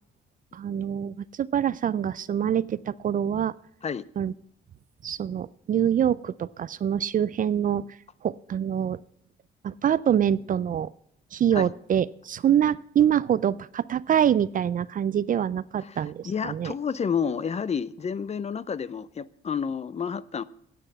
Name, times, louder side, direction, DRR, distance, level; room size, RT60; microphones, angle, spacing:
voice 1, 0.5-3.5 4.2-4.3 5.0-7.8 8.2-9.0 9.6-10.9 11.3-16.7, right 9 dB, 45° right, 18 dB, 0.4 m, -25 dB
voice 2, 15.8-20.4, left 6 dB, 35° left, 17 dB, 0.5 m, -30 dB
9.9 x 7.7 x 7.3 m, 0.71 s
cardioid pair, 90°, 20 cm